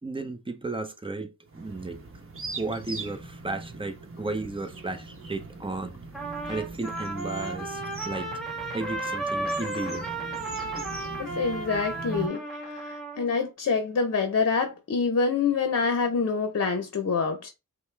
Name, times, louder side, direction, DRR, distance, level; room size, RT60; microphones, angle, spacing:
voice 1, 0.0-2.0 2.5-6.0 6.4-8.3 8.7-10.1, right 3 dB, 15° right, 0.7 m, -34 dB
sound 1, 1.5-12.3, right 3 dB, 40° right, 1.0 m, -40 dB
Trumpet, 6.1-13.3, right 2 dB, ahead, 1.5 m, -34 dB
voice 2, 11.2-17.5, left 5 dB, 50° left, 0.8 m, -26 dB
5.3 x 2.2 x 3.3 m
wide cardioid pair, 90°, 32 cm